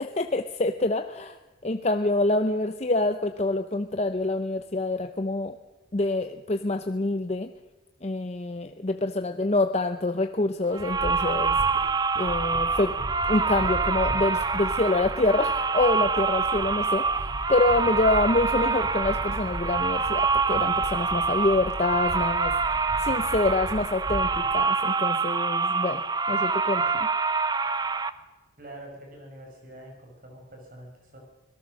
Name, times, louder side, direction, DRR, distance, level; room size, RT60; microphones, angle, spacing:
voice 1, 0.0-1.4 1.6-5.6 5.9-7.5 8.0-13.0 13.3-22.5 23.0-26.0 26.3-26.8, left 2 dB, 35° left, 7 dB, 0.7 m, -26 dB
sound 1, 10.7-28.1, right 4 dB, 20° right, 0.6 m, -26 dB
sound 2, 10.8-12.0 12.2-24.5, equal, 90° right, 6.0 m, -38 dB
sound 3, 11.4-11.9 12.1-12.6 12.9-13.0 13.3-13.8 14.1-14.2 14.5-14.7 15.1-15.2 15.6-15.7 16.1-16.2 16.6-16.8 17.2-17.3 17.7-17.8, equal, 50° left, 7.7 m, -49 dB
voice 2, 28.6-31.2, right 1 dB, 50° right, 1 dB, 5.5 m, -45 dB
25.0 x 18.0 x 6.4 m, 1.1 s
head